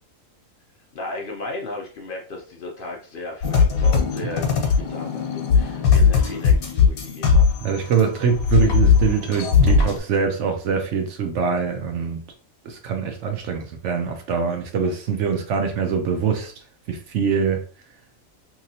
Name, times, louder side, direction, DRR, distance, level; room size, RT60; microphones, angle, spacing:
voice 1, 0.9-7.4, left 2 dB, 65° left, 0.5 m, -35 dB
sound 1, 3.4-8.1 8.3-10.0, left 5 dB, 85° left, 1.2 m, -18 dB
voice 2, 7.6-12.2 12.6-16.5 16.9-17.6, right 6 dB, 65° right, 0.9 m, -23 dB
3.0 x 2.8 x 2.6 m
omnidirectional pair, 1.4 m